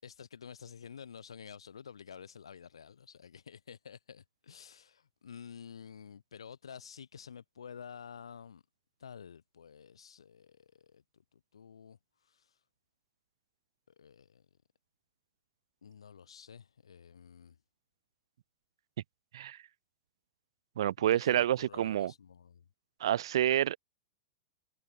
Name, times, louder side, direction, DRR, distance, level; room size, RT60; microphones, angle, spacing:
voice 1, 0.0-8.6 9.0-12.6 13.9-14.5 15.8-17.6 21.0-22.7, left 7 dB, 90° left, 5.4 m, -50 dB
voice 2, 20.8-22.1 23.0-23.8, right 11 dB, 75° right, 0.3 m, -28 dB
hypercardioid pair, 115°, 3 cm